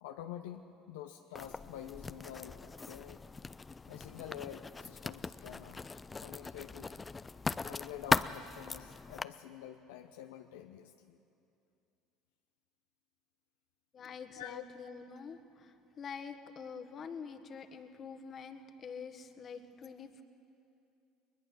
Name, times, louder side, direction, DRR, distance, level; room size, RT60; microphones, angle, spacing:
voice 1, 0.0-3.2 3.9-5.9 6.2-6.9 7.6-11.2 14.4-14.7, left 11 dB, 80° left, 5 dB, 0.8 m, -47 dB
Writing, 1.3-9.2, left 4 dB, 25° left, 0.5 m, -38 dB
voice 2, 13.9-20.2, left 6 dB, 45° left, 8 dB, 1.5 m, -46 dB
21.5 x 20.5 x 6.2 m, 2.6 s
hypercardioid pair, 70°, 0 cm